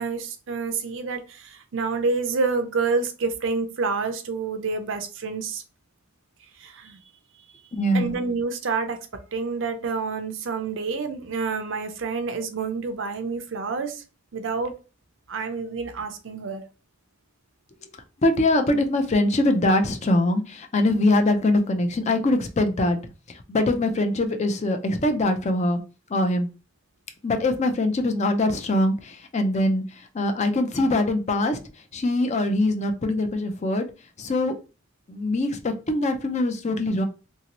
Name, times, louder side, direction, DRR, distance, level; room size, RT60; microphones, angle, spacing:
voice 1, 0.0-5.6 6.6-7.0 7.9-9.0 9.3-14.0 14.3-14.7 15.3-16.6, right 4 dB, 70° right, 0.5 m, -28 dB
voice 2, 7.8-8.2 18.2-23.0 23.3-25.8 26.1-26.5 27.2-31.6 31.9-33.9 34.2-34.5 35.1-37.0, left 1 dB, 35° left, 0.4 m, -23 dB
2.9 x 2.7 x 2.9 m
head